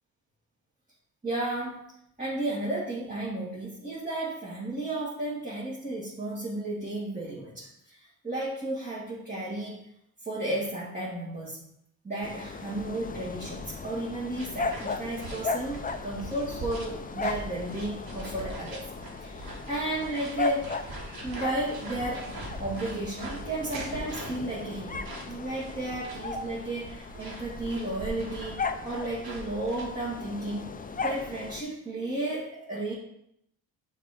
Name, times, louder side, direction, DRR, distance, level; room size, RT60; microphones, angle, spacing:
voice 1, 1.2-1.8 2.2-9.9 10.2-11.6 12.0-18.8 19.2-21.0 21.2-25.0 25.3-30.7 31.0-32.9, right 1 dB, 15° right, -8 dB, 2.0 m, -33 dB
sound 1, 12.2-31.6, left 4 dB, 20° left, 0.5 m, -37 dB
sound 2, 14.4-29.9, right 2 dB, 50° right, 1.6 m, -43 dB
sound 3, 19.3-24.2, right 3 dB, 90° right, 1.0 m, -49 dB
6.5 x 3.0 x 5.0 m, 0.77 s
supercardioid pair, 65°, 46 cm